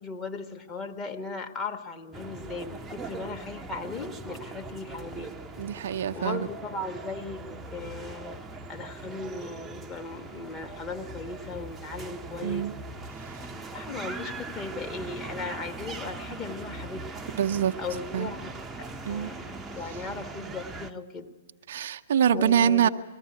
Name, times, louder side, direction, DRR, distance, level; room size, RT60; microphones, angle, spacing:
voice 1, 0.0-5.3 6.1-8.4 8.7-12.7 13.7-17.1 17.8-18.5 19.0-21.3 22.3-22.9, left 3 dB, 25° left, 4 dB, 1.4 m, -37 dB
sound 1, 2.1-20.9, right 3 dB, 15° right, 0.7 m, -40 dB
voice 2, 5.6-6.5 12.4-12.7 17.4-17.7 18.1-18.3 19.1-19.3 21.7-22.9, right 9 dB, 60° right, 6 dB, 0.6 m, -24 dB
19.0 x 15.0 x 9.6 m, 1.5 s
figure-of-eight pair, 115°, 0 cm